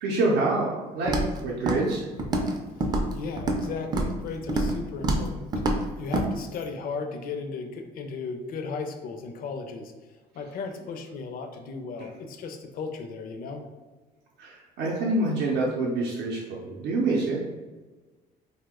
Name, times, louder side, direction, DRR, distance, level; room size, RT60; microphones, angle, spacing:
voice 1, 0.0-2.0 14.4-17.4, right 2 dB, 75° right, -4 dB, 0.5 m, -26 dB
Walk footsteps, 1.1-1.4 1.7-2.6 2.8-3.6 3.9-4.2 4.5-4.8 5.0-5.3 5.5-5.8 6.1-6.3, right 1 dB, 25° right, 0.4 m, -25 dB
voice 2, 3.1-5.3 6.0-9.9 10.3-13.6, left 4 dB, 60° left, 6 dB, 0.4 m, -35 dB
2.8 x 2.1 x 3.5 m, 1.3 s
cardioid pair, 110°, 17 cm